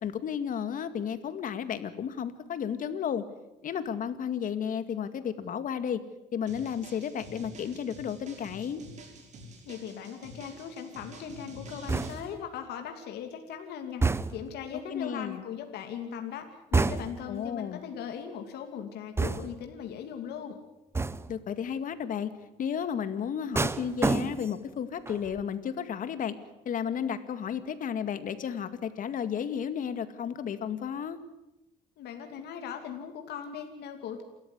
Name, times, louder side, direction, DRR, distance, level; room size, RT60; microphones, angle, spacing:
voice 1, 0.0-3.2 3.6-6.0 6.3-8.8 14.9-15.4 17.3-17.8 21.3-22.3 22.6-26.3 26.7-31.2, left 8 dB, 55° left, 11 dB, 2.1 m, -33 dB
sound 1, 6.5-12.2, right 1 dB, 45° right, 5.5 m, -48 dB
voice 2, 9.7-20.6 32.0-34.2, left 8 dB, 75° left, 5 dB, 2.8 m, -39 dB
sound 2, 11.9-12.5 14.0-14.6 16.7-17.3 19.2-19.7 20.9-21.4 23.5-24.7 25.0-25.4, right 3 dB, 15° right, 0.9 m, -29 dB
28.5 x 13.5 x 9.7 m, 0.96 s
cardioid pair, 110°, 17 cm